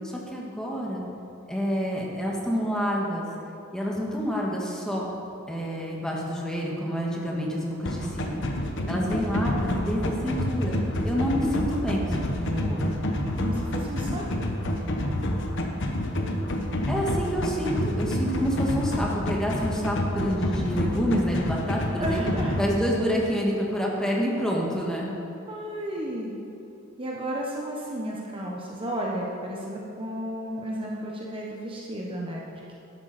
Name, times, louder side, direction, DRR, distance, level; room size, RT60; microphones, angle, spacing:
voice 1, 0.3-1.0 1.5-3.3 3.7-5.1 5.5-8.4 8.9-10.8 11.0-13.0 16.9-22.3 22.6-25.1, equal, 5° left, -3 dB, 1.7 m, -28 dB
sound 1, 7.8-22.6, left 1 dB, 65° left, 1.1 m, -28 dB
voice 2, 13.4-14.5 22.0-22.5 25.5-26.3 27.0-32.7, right 1 dB, 25° right, -3 dB, 1.1 m, -33 dB
12.0 x 11.5 x 4.3 m, 2.8 s
head